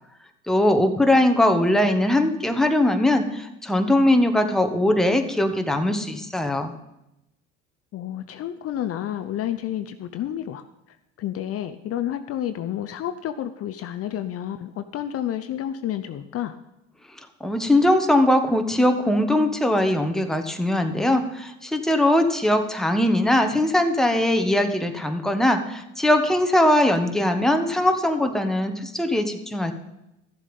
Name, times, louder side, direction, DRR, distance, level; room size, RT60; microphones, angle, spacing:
voice 1, 0.5-6.7 17.4-29.7, left 1 dB, ahead, 5 dB, 1.2 m, -21 dB
voice 2, 7.9-10.6 11.2-16.6, left 11 dB, 45° left, 9 dB, 0.7 m, -30 dB
13.0 x 7.4 x 5.3 m, 0.89 s
supercardioid pair, 85°, 31 cm